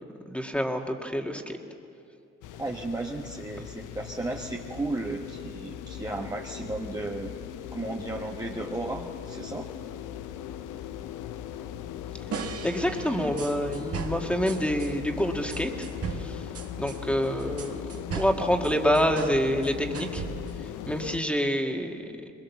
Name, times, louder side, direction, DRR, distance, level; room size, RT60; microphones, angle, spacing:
voice 1, 0.2-1.6 12.6-15.9 16.1-16.4 16.8-20.2 20.9-22.0, equal, 5° left, 3 dB, 2.0 m, -27 dB
sound 1, 2.4-21.2, left 10 dB, 90° left, 0.8 m, -39 dB
voice 2, 2.6-7.3 7.7-9.7, right 2 dB, 15° right, 0 dB, 1.2 m, -34 dB
sound 2, 12.3-14.9 15.5-19.4 19.6-20.7, right 6 dB, 50° right, 1.7 m, -37 dB
22.0 x 22.0 x 7.2 m, 2.6 s
cardioid pair, 90°, 30 cm